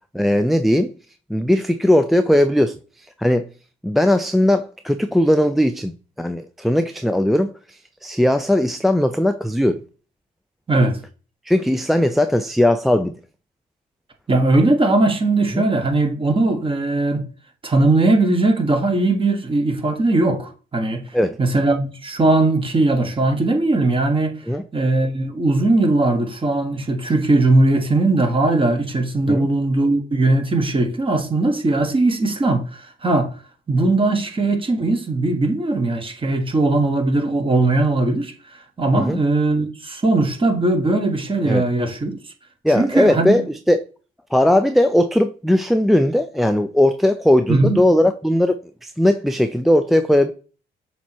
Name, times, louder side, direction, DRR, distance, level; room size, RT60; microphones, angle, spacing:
voice 1, 0.1-0.9 1.3-2.7 3.2-3.5 3.8-5.9 6.2-9.8 11.5-13.1 15.5-15.7 21.1-21.3 24.5-24.6 29.3-29.5 39.0-39.2 41.5-41.6 42.6-43.8 44.3-50.3, left 1 dB, ahead, 0.4 m, -18 dB
voice 2, 10.7-11.0 14.3-17.2 17.6-21.0 21.4-24.3 24.7-33.3 33.7-38.3 38.8-42.2 42.7-43.4 47.5-47.8, right 2 dB, 25° right, 1.4 m, -19 dB
7.0 x 3.0 x 4.5 m
cardioid pair, 90°, 20 cm